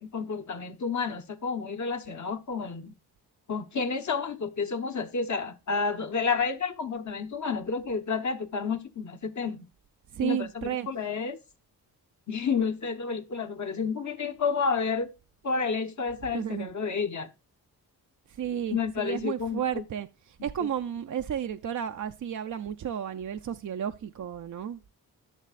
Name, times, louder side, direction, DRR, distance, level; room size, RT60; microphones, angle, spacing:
voice 1, 0.0-3.0 3.5-9.7 10.2-11.4 12.3-15.1 15.4-17.3 18.7-19.8, left 5 dB, 45° left, 1.1 m, -30 dB
voice 2, 10.1-10.9 16.3-16.7 18.3-24.9, right 9 dB, 50° right, 0.5 m, -33 dB
11.5 x 6.6 x 2.5 m
cardioid pair, 60°, 40 cm